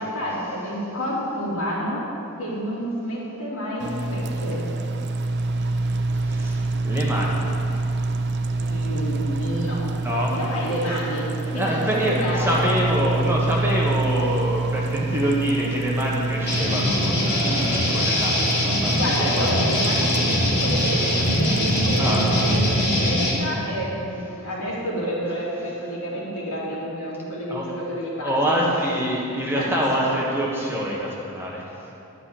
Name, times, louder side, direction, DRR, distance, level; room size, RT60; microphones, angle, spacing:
voice 1, 0.0-2.0 2.4-4.8 8.6-9.8 10.3-11.3 11.5-12.6 18.9-28.6 29.5-29.7, equal, 65° left, -6 dB, 3.0 m, -29 dB
sound 1, 3.8-22.9, right 2 dB, 50° right, 0.6 m, -27 dB
voice 2, 6.2-7.5 10.0-10.3 11.5-19.5 20.9-21.1 21.6-22.3 27.5-27.6 28.2-31.9, equal, 10° right, -4 dB, 1.3 m, -26 dB
sound 2, 16.5-23.3, left 1 dB, 50° left, 2.8 m, -22 dB
11.0 x 5.8 x 8.7 m, 2.8 s
head